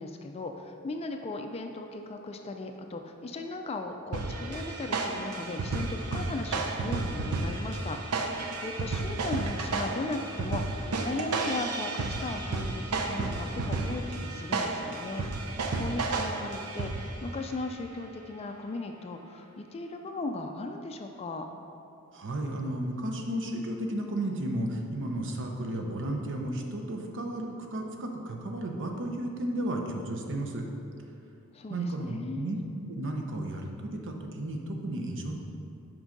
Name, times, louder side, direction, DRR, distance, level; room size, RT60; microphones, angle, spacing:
voice 1, 0.0-8.0 8.2-21.5 31.5-32.5, left 2 dB, 25° left, 5 dB, 0.3 m, -37 dB
sound 1, 4.1-17.3, right 3 dB, 90° right, 0.7 m, -32 dB
voice 2, 22.1-30.6 31.7-32.6 32.9-35.3, right 1 dB, 55° right, 2 dB, 0.8 m, -33 dB
6.1 x 5.4 x 5.2 m, 2.7 s
head